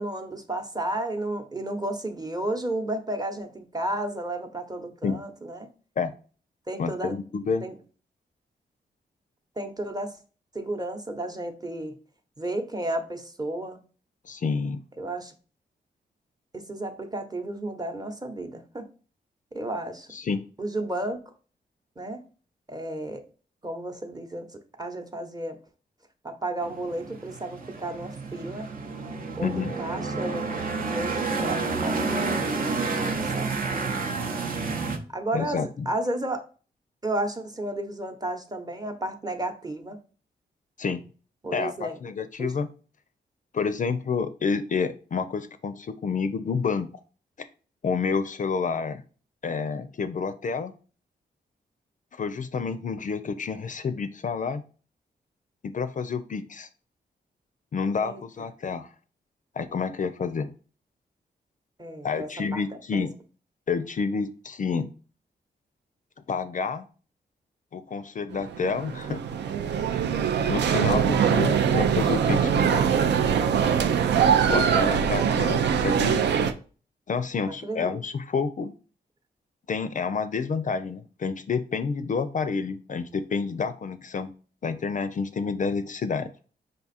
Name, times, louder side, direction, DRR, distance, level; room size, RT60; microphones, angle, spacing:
voice 1, 0.0-5.7 6.7-7.1 7.6-7.7 9.6-10.1 10.5-12.0 12.4-13.8 15.0-15.3 16.5-18.9 19.5-20.1 20.6-21.2 22.0-22.2 22.7-23.2 23.6-25.6 26.2-28.7 29.4-30.6 30.9-33.9 35.1-36.4 37.0-40.0 41.4-42.0 42.4-42.5 58.0-58.2 61.8-62.6 62.9-63.0 75.2-75.3 77.5-77.9, right 1 dB, 20° right, 6 dB, 0.9 m, -32 dB
voice 2, 6.8-7.7 14.2-14.8 20.1-20.4 29.4-29.7 35.3-35.9 40.8-41.1 41.5-42.7 43.5-46.9 47.4-47.5 47.8-49.0 49.4-50.7 52.1-54.6 55.6-56.7 57.7-58.9 59.6-60.5 62.0-63.1 63.7-64.9 66.3-66.9 67.7-69.2 70.5-72.8 74.5-76.2 77.1-78.7 79.7-84.3 84.6-86.3, left 5 dB, 45° left, 10 dB, 0.4 m, -29 dB
sound 1, 26.6-35.0, right 4 dB, 55° right, 0.8 m, -30 dB
sound 2, 68.3-76.5, right 7 dB, 80° right, 0.4 m, -23 dB
5.2 x 2.3 x 4.1 m, 0.38 s
cardioid pair, 65°, 18 cm